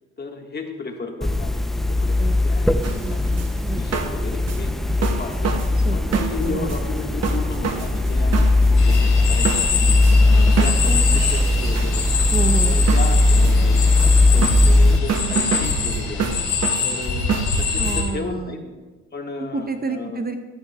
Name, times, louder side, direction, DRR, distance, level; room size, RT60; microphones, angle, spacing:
voice 1, 0.2-3.3 3.7-5.5 5.9-9.9 10.3-12.0 12.6-13.8 14.3-16.4 16.8-18.6 19.1-20.2, left 4 dB, 35° left, 3 dB, 1.4 m, -34 dB
sound 1, 1.2-15.0, left 2 dB, ahead, 0.4 m, -18 dB
voice 2, 2.6-3.8 5.7-6.7 12.3-12.8 17.8-18.6 19.4-20.4, right 4 dB, 30° right, 7 dB, 0.7 m, -30 dB
sound 2, 2.8-18.0, right 6 dB, 55° right, 0.9 m, -29 dB
sound 3, 8.8-18.0, left 5 dB, 80° left, 3.5 m, -25 dB
15.0 x 10.5 x 2.2 m, 1.3 s
cardioid pair, 90°, 30 cm